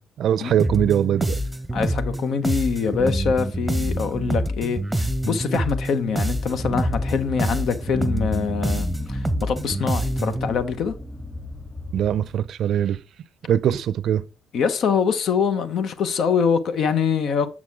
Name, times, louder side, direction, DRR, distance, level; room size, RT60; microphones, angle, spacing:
voice 1, 0.0-1.4 11.9-13.0 13.5-14.2, right 10 dB, 70° right, 0.5 m, -22 dB
sound 1, 0.6-10.5, right 1 dB, 5° right, 0.9 m, -26 dB
voice 2, 1.7-10.9 14.5-17.5, left 6 dB, 70° left, 0.9 m, -24 dB
sound 2, 6.0-12.6, left 3 dB, 20° left, 2.6 m, -35 dB
7.4 x 6.2 x 3.6 m
cardioid pair, 90°, 0 cm